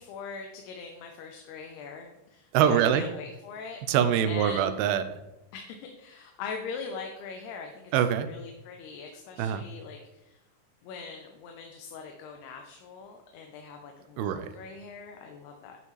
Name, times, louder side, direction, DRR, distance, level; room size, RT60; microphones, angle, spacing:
voice 1, 0.0-3.8 4.2-4.7 5.5-7.9 8.3-10.4 10.8-15.8, left 5 dB, 90° left, 3 dB, 2.8 m, -42 dB
voice 2, 2.5-3.1 3.9-5.2 7.9-8.3 9.4-9.6 14.2-14.5, right 9 dB, 85° right, 11 dB, 2.4 m, -24 dB
10.5 x 5.5 x 3.2 m, 0.94 s
omnidirectional pair, 4.5 m